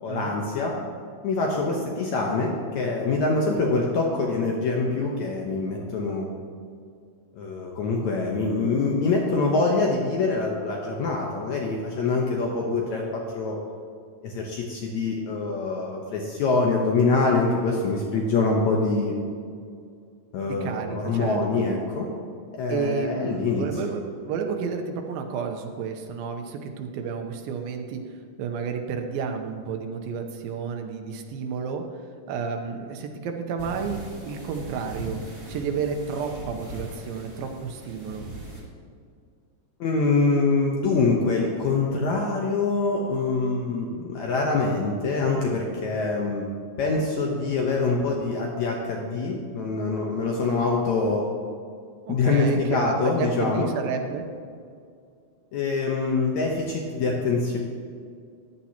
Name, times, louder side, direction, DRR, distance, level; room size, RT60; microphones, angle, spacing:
voice 1, 0.0-0.7 1.2-6.3 7.3-13.6 14.2-19.1 20.3-22.1 22.6-23.7 39.8-46.5 46.8-51.2 52.1-53.7 55.5-57.6, left 3 dB, 70° left, -1 dB, 2.0 m, -25 dB
voice 2, 20.5-21.6 22.7-28.0 28.4-31.8 32.3-34.0 34.3-35.2 35.5-38.3 52.1-54.2, right 6 dB, 85° right, 4 dB, 2.7 m, -31 dB
sound 1, 33.6-38.6, right 1 dB, 25° right, 2.7 m, -39 dB
14.5 x 10.5 x 2.9 m, 2.3 s
omnidirectional pair, 4.0 m